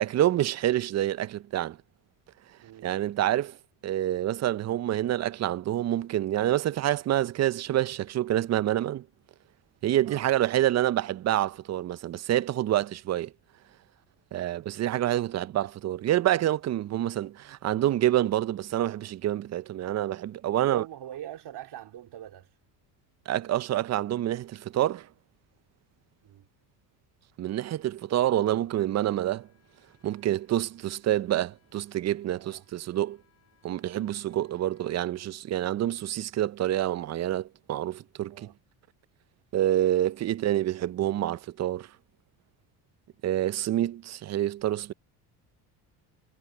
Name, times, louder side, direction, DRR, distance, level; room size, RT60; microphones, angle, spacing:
voice 1, 0.0-1.8 2.8-3.6 3.8-9.0 9.8-13.3 14.3-20.8 23.3-25.1 27.4-29.5 30.0-33.2 33.6-38.5 39.5-41.9 43.2-44.9, right 13 dB, 35° right, 0.5 m, -27 dB
voice 2, 2.6-2.9 10.1-10.3 20.5-22.5 26.2-26.5 32.4-32.6 38.3-38.5, right 11 dB, 60° right, 3.1 m, -42 dB
Wind instrument woodwind instrument, 28.9-35.0, left 10 dB, 30° left, 7.1 m, -70 dB
supercardioid pair, 90°, 46 cm